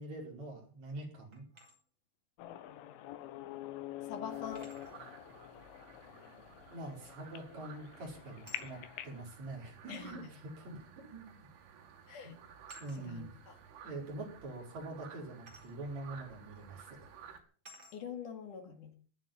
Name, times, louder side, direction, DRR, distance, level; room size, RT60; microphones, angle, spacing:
voice 1, 0.0-1.4 6.7-8.8 9.0-11.5 12.2-12.4 12.8-13.3 13.8-17.1, right 2 dB, 35° right, 0 dB, 6.0 m, -45 dB
sound 1, 1.3-1.8 3.3-3.4 4.5-5.0 7.2-7.5 8.4-8.7 9.9-10.0 11.3-11.5 11.8-12.0 12.7-13.0 15.5-15.7 16.5-16.7 17.6-18.0, equal, 15° right, 4.1 m, -56 dB
sound 2, 2.4-9.2, left 13 dB, 80° left, 3.6 m, -46 dB
voice 2, 4.1-4.7 9.9-10.3 12.1-12.3 13.0-13.5 17.9-18.9, left 7 dB, 50° left, 7 dB, 2.8 m, -44 dB
sound 3, 4.3-17.4, right 7 dB, 80° right, 4.8 m, -56 dB
21.0 x 7.7 x 7.5 m, 0.43 s
omnidirectional pair, 5.7 m